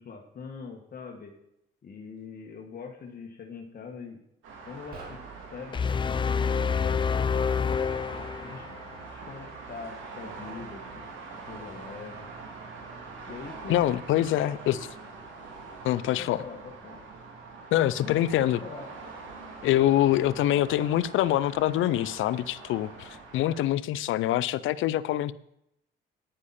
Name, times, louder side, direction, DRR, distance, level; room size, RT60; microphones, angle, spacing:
voice 1, 0.0-1.3 1.8-4.2 4.6-5.2 5.5-5.8 6.0-7.9 8.4-8.8 9.1-11.1 11.5-12.3 13.3-13.8 14.3-14.8 16.2-17.0 18.0-18.8, left 5 dB, 50° left, 2 dB, 1.7 m, -42 dB
sound 1, 4.4-23.6, right 4 dB, 85° right, 2.8 m, -44 dB
sound 2, 4.9-6.4, right 3 dB, 50° right, 3.4 m, -48 dB
sound 3, 5.7-8.9, left 6 dB, 25° left, 0.4 m, -27 dB
voice 2, 13.7-14.8 15.8-16.4 17.7-18.6 19.6-25.3, left 13 dB, 80° left, 18 dB, 0.5 m, -25 dB
10.0 x 9.8 x 4.3 m, 0.78 s
cardioid pair, 90°, 20 cm